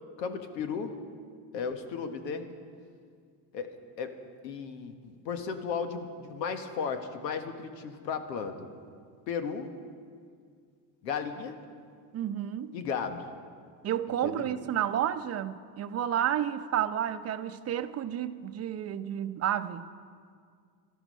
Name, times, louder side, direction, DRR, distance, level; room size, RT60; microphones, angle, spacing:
voice 1, 0.2-1.0 1.5-2.5 3.5-3.7 4.0-4.1 4.4-8.7 9.3-9.7 11.0-11.6 12.7-13.3 14.2-14.5, left 6 dB, 85° left, 7 dB, 1.6 m, -35 dB
voice 2, 12.1-12.7 13.8-19.9, right 10 dB, 30° right, 10 dB, 0.7 m, -31 dB
18.0 x 12.5 x 5.5 m, 2.1 s
supercardioid pair, 105°, 49 cm